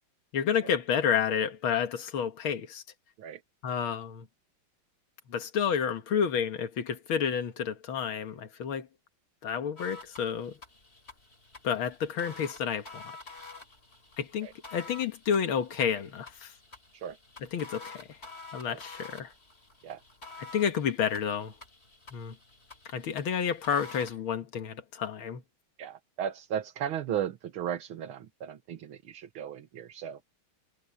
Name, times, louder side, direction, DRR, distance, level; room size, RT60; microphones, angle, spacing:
voice 1, 0.3-2.8 3.6-4.3 5.3-8.9 9.4-10.6 11.6-13.0 14.2-16.5 17.5-18.2 18.5-19.3 20.4-21.5 22.1-22.3 22.9-25.4, left 7 dB, 75° left, 2.2 m, -30 dB
sound 1, 9.8-24.2, left 3 dB, 30° left, 4.3 m, -49 dB
voice 2, 25.8-30.2, right 9 dB, 80° right, 2.1 m, -36 dB
omnidirectional pair, 2.3 m